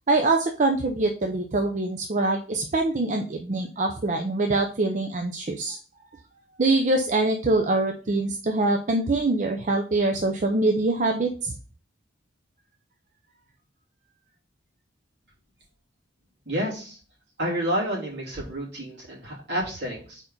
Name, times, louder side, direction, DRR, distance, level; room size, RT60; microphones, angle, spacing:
voice 1, 0.1-5.8 6.6-11.5, right 2 dB, 40° right, 4 dB, 0.5 m, -24 dB
voice 2, 16.5-17.0 17.4-20.2, equal, 60° right, -5 dB, 3.0 m, -29 dB
4.6 x 4.4 x 5.2 m, 0.40 s
head